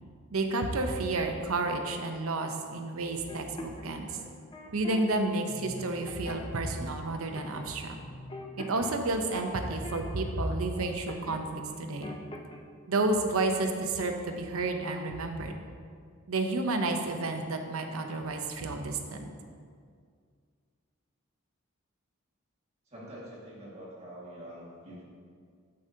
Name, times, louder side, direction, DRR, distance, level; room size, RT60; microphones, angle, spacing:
voice 1, 0.3-4.2 4.7-8.0 8.6-12.2 12.9-15.5 16.3-19.3, right 2 dB, 85° right, 5 dB, 0.8 m, -31 dB
sound 1, 3.3-5.0 5.5-6.7 7.4-7.7 8.0-11.5 11.7-12.6, left 1 dB, 25° left, 0.5 m, -44 dB
voice 2, 22.9-25.0, equal, 30° right, -6 dB, 1.9 m, -45 dB
8.6 x 7.8 x 2.8 m, 2.1 s
head